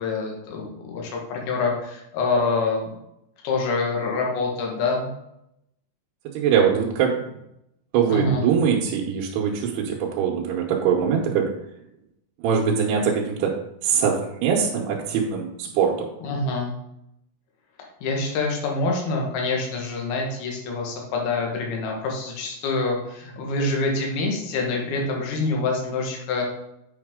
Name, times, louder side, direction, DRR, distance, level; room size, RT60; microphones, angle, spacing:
voice 1, 0.0-2.9 3.4-5.1 8.1-8.5 16.2-16.7 18.0-26.4, left 3 dB, 70° left, 0 dB, 3.2 m, -26 dB
voice 2, 6.3-7.2 7.9-11.5 12.4-13.6 13.8-16.1, right 7 dB, 80° right, -2 dB, 2.8 m, -22 dB
8.0 x 5.8 x 3.6 m, 0.82 s
omnidirectional pair, 4.8 m